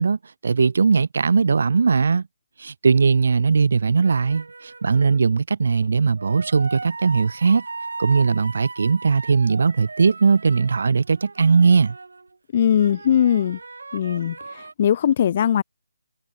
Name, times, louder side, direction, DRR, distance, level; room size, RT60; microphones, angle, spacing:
voice 1, 0.0-2.2 2.6-7.6 8.0-12.0, right 5 dB, 50° right, 1.0 m, -19 dB
sound 1, 4.0-5.2 6.2-12.3 12.7-14.7, right 3 dB, 70° right, 5.1 m, -38 dB
voice 2, 12.5-13.6 13.9-15.6, left 9 dB, 25° left, 0.3 m, -20 dB
hypercardioid pair, 175°, 0 cm